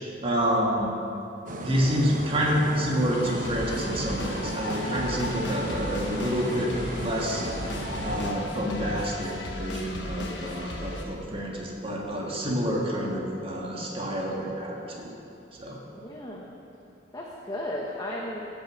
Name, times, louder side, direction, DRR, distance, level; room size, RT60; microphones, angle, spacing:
voice 1, 0.2-0.9 1.6-7.4 8.0-15.1 15.6-15.8, equal, 30° right, -2 dB, 1.7 m, -28 dB
sound 1, 1.5-8.3, right 1 dB, 50° right, 1.0 m, -35 dB
sound 2, 3.1-11.0, left 1 dB, 90° left, 1.4 m, -36 dB
voice 2, 16.0-16.4 17.1-18.5, left 1 dB, 20° left, -3 dB, 1.0 m, -35 dB
15.5 x 6.1 x 6.2 m, 2.7 s
head